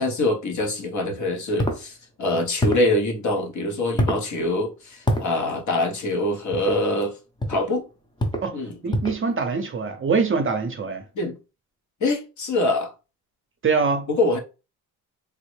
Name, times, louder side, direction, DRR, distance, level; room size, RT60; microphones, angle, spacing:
voice 1, 0.0-7.1 7.5-7.9 8.5-8.7 11.1-11.4 12.0-12.9 14.1-14.4, left 2 dB, 50° left, 0.9 m, -24 dB
sound 1, 1.6-1.8 2.6-2.9 4.0-4.3 5.1-5.3 6.5-6.8 7.4-7.7 8.2-8.5 8.9-9.2, equal, 10° left, 0.6 m, -24 dB
voice 2, 8.8-11.0 13.6-14.1, right 4 dB, 35° right, 0.6 m, -23 dB
3.5 x 2.0 x 3.1 m
cardioid pair, 100°, 37 cm